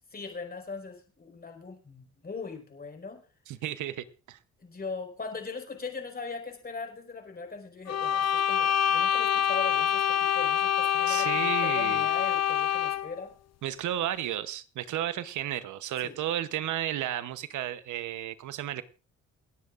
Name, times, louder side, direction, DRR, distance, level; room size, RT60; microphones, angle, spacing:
voice 1, 0.1-3.2 4.6-13.3 16.0-16.2, left 4 dB, 30° left, 4 dB, 4.9 m, -40 dB
voice 2, 3.5-4.4 11.1-12.1 13.6-18.8, right 12 dB, 80° right, 13 dB, 0.9 m, -33 dB
sound 1, 7.9-13.2, left 10 dB, 60° left, 0.8 m, -26 dB
28.0 x 9.6 x 2.5 m, 0.35 s
cardioid pair, 90°, 30 cm